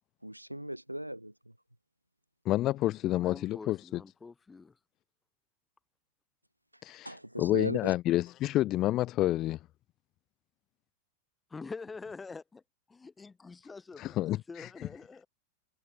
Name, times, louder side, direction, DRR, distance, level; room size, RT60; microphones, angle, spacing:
voice 1, 0.2-1.5 7.0-7.9, right 1 dB, 90° right, 2.2 m, -38 dB
voice 2, 2.5-4.0 6.8-9.6 14.0-14.7, left 15 dB, 35° left, 0.5 m, -29 dB
voice 3, 3.1-4.8 11.5-12.6 12.9-15.3, left 4 dB, 15° left, 5.4 m, -46 dB
figure-of-eight pair, 90°, 0 cm